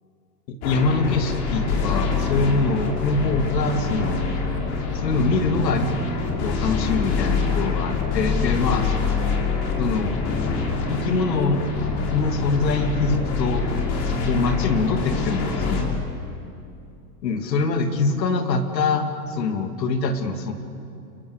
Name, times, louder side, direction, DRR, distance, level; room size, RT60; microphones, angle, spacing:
voice 1, 0.5-4.3 4.9-5.9 6.4-8.9 9.8-10.1 10.9-11.6 12.1-13.6 14.2-16.0 17.2-20.5, left 4 dB, 80° left, 7 dB, 2.9 m, -24 dB
sound 1, 0.6-15.8, left 4 dB, 45° left, 5.3 m, -25 dB
28.5 x 23.0 x 8.3 m, 2.6 s
hypercardioid pair, 115°, 50 cm